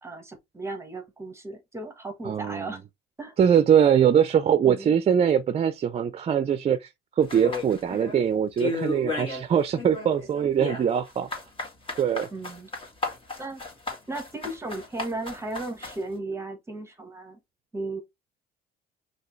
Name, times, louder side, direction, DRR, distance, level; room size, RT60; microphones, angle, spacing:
voice 1, 0.0-2.8 3.2-3.3 4.6-4.9 12.3-12.7 13.4-13.6 14.1-17.4 17.7-18.0, right 2 dB, 15° right, 1.3 m, -35 dB
voice 2, 2.2-2.7 3.4-6.9 7.2-11.3 12.0-12.3, right 8 dB, 40° right, 0.5 m, -22 dB
sound 1, 7.3-8.2 8.6-9.5 9.7-16.0, left 3 dB, 30° left, 2.0 m, -33 dB
5.7 x 2.8 x 3.1 m
cardioid pair, 110°, 17 cm